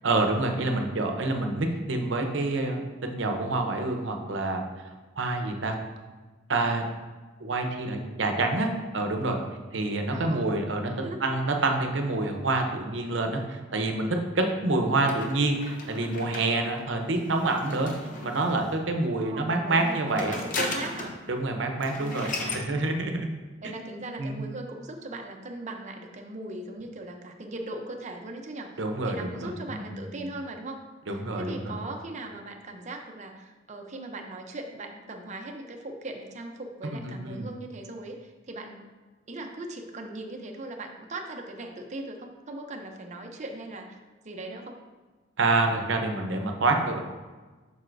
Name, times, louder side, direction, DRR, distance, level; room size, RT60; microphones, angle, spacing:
voice 1, 0.0-4.6 5.2-5.8 6.5-6.9 7.4-9.4 9.7-14.1 14.3-17.9 18.2-20.4 21.3-23.3 24.2-24.4 28.8-30.0 31.1-31.7 36.8-37.5 45.4-47.0, right 2 dB, 75° right, 4 dB, 0.8 m, -27 dB
voice 2, 10.1-10.5 11.0-11.2 19.2-21.2 22.0-22.7 23.6-28.7 29.1-30.8 31.1-38.9 39.3-44.0 44.2-44.8, right 2 dB, 40° right, 3 dB, 0.6 m, -39 dB
sound 1, 15.1-18.7 19.7-21.2 21.5-21.6 21.8-22.7, left 2 dB, 45° left, 0.8 m, -36 dB
7.7 x 5.5 x 2.6 m, 1.3 s
head